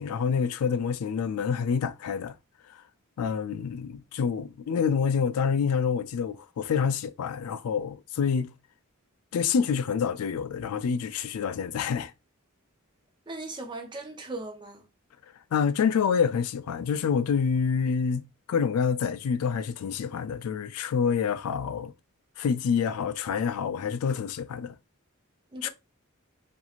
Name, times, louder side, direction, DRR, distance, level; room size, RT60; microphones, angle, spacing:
voice 1, 0.0-2.4 2.7-2.8 3.2-8.5 9.3-12.1 15.5-21.9 22.4-24.8 25.6-25.7, left 6 dB, 90° left, 0.4 m, -27 dB
voice 2, 13.3-14.8 25.5-25.7, right 2 dB, 20° right, 0.5 m, -38 dB
3.0 x 2.5 x 2.4 m
head